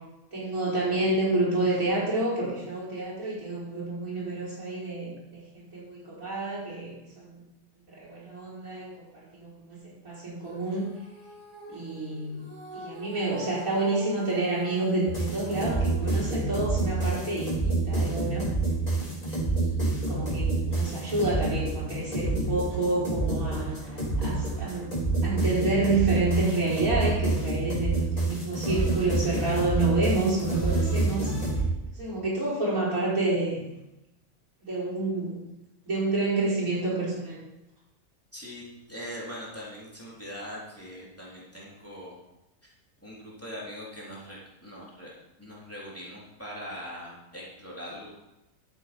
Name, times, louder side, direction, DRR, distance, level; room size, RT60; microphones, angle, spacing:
voice 1, 0.3-7.4 7.9-9.1 9.3-10.9 11.7-18.5 19.5-19.7 20.1-24.9 25.2-31.3 32.0-33.6 34.6-35.4 35.8-37.4, right 2 dB, 85° right, -7 dB, 5.5 m, -29 dB
Female singing, 10.4-16.9, equal, 35° right, 4.3 m, -46 dB
sound 1, 15.1-31.6, right 2 dB, 30° left, 3.7 m, -28 dB
voice 2, 38.3-38.6 38.9-42.2 42.6-42.7 43.0-48.1, equal, 10° left, -6 dB, 3.7 m, -41 dB
12.5 x 8.2 x 5.3 m, 0.94 s
omnidirectional pair, 1.4 m